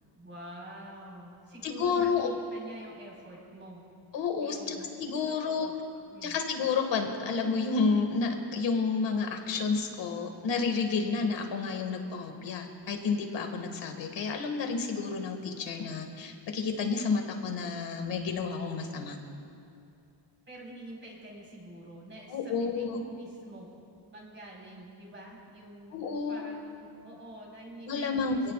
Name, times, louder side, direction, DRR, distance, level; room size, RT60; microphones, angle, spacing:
voice 1, 0.2-3.8 4.4-4.9 5.3-5.7 6.1-6.4 20.5-23.7 24.1-26.0 26.3-28.3, right 1 dB, 25° right, -3 dB, 4.9 m, -47 dB
voice 2, 1.6-2.3 4.1-4.6 5.0-5.7 6.2-19.2 22.3-23.0 25.9-26.4 27.9-28.5, left 5 dB, 85° left, 4 dB, 2.1 m, -30 dB
27.0 x 17.5 x 2.5 m, 2.5 s
wide cardioid pair, 165°, 43 cm